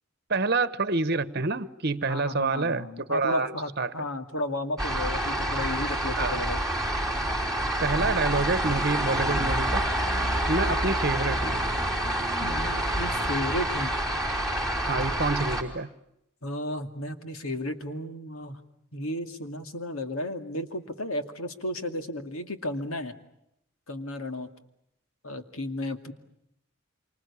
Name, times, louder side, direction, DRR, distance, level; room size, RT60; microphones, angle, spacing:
voice 1, 0.3-3.9 6.2-6.4 7.8-9.8 10.5-11.6 14.9-15.9, right 3 dB, 50° right, 1.1 m, -27 dB
voice 2, 2.1-6.6 12.4-13.9 16.4-18.6 18.9-23.1 23.9-24.5 25.2-26.1, left 1 dB, 80° left, 2.4 m, -33 dB
sound 1, 4.8-15.6, right 1 dB, ahead, 4.8 m, -27 dB
27.5 x 25.5 x 8.5 m
head